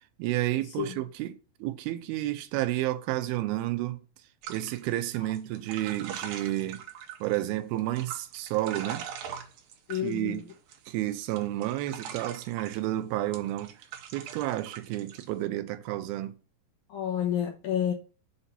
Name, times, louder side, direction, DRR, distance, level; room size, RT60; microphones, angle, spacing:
voice 1, 0.2-4.0 4.5-6.9 7.2-9.1 9.9-10.5 10.9-13.7 14.1-16.4, right 15 dB, 90° right, 2.5 m, -31 dB
sound 1, 4.4-7.4 7.8-10.9 11.2-12.8 13.3-15.2, right 8 dB, 75° right, 2.5 m, -41 dB
voice 2, 9.9-10.4 16.9-17.9, left 10 dB, 65° left, 2.0 m, -29 dB
7.0 x 2.7 x 5.6 m
omnidirectional pair, 4.3 m